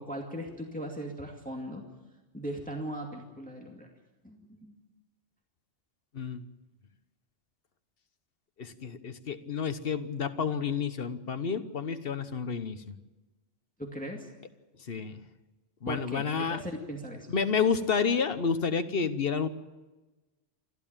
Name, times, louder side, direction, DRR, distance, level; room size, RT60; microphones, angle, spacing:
voice 1, 0.0-1.9 2.3-3.9 4.2-4.8 13.8-14.3 15.9-17.3, equal, 5° left, 1 dB, 2.3 m, -38 dB
voice 2, 8.6-12.9 14.9-15.2 15.8-16.6 17.3-19.5, left 6 dB, 55° left, 11 dB, 1.2 m, -30 dB
28.0 x 12.5 x 8.9 m, 1.2 s
omnidirectional pair, 1.2 m